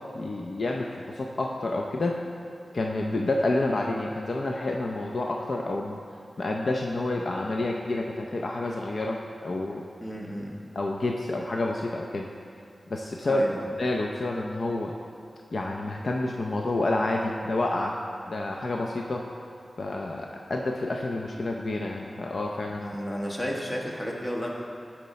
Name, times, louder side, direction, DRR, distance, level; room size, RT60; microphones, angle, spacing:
voice 1, 0.1-2.2 2.7-6.0 6.4-9.8 10.8-12.3 12.9-13.4 13.8-14.9 15.5-17.9 18.3-19.2 19.8-23.0, left 2 dB, 55° left, 0 dB, 0.5 m, -29 dB
voice 2, 10.0-10.5 13.2-13.7 22.8-24.5, equal, 20° left, -2 dB, 1.2 m, -32 dB
12.5 x 4.3 x 4.2 m, 2.7 s
wide cardioid pair, 95°, 0 cm